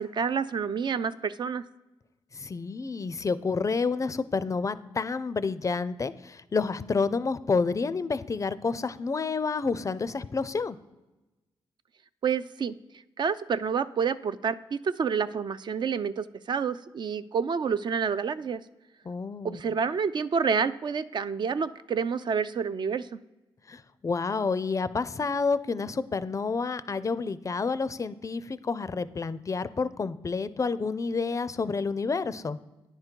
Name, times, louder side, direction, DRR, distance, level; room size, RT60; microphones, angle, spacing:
voice 1, 0.0-1.6 12.2-12.7 13.2-18.6 19.4-23.1, right 6 dB, 50° right, 13 dB, 0.3 m, -28 dB
voice 2, 2.3-10.8 19.1-19.6 23.7-32.6, left 4 dB, 30° left, 15 dB, 0.4 m, -29 dB
10.0 x 3.7 x 4.5 m, 1.1 s
cardioid pair, 75°, 10 cm